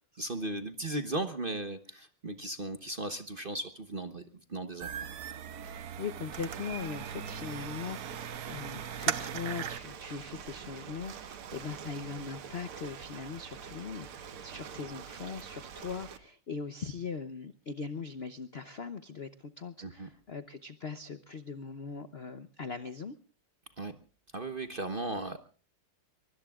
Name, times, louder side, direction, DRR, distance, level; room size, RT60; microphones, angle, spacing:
voice 1, 0.1-4.2 4.5-4.9 19.8-20.1 23.8-23.9 24.3-25.4, right 2 dB, 35° right, 9 dB, 0.9 m, -36 dB
sound 1, 4.8-9.8, right 9 dB, 55° right, 1.2 m, -38 dB
voice 2, 5.6-23.1, left 5 dB, 70° left, 11 dB, 0.5 m, -40 dB
Ocean, 6.3-16.2, right 7 dB, 85° right, 2.2 m, -46 dB
24.0 x 23.0 x 2.4 m, 0.41 s
omnidirectional pair, 2.3 m